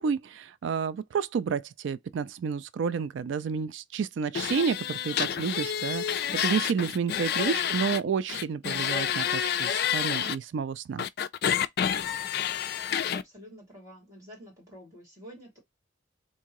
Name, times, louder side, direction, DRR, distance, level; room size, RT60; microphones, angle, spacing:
voice 1, 0.0-11.0, right 6 dB, 65° right, 0.3 m, -30 dB
sound 1, 4.3-8.0 8.3-10.4 11.0-13.2, left 9 dB, 50° left, 0.3 m, -29 dB
voice 2, 7.3-8.0 12.8-15.6, equal, 15° right, 2.4 m, -49 dB
3.6 x 2.7 x 2.9 m
head